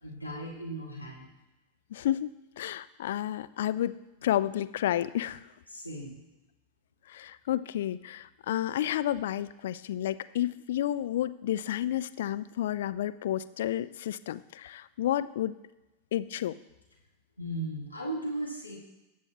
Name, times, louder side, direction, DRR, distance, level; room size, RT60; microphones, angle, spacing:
voice 1, 0.0-1.3 5.7-6.3 17.4-18.8, right 1 dB, 90° left, -4 dB, 1.9 m, -37 dB
voice 2, 1.9-2.3 2.6-3.9 4.2-5.4 7.1-15.6 16.1-16.5, left 12 dB, 55° left, 13 dB, 0.4 m, -31 dB
20.0 x 7.0 x 3.0 m, 1.0 s
figure-of-eight pair, 90°, 0 cm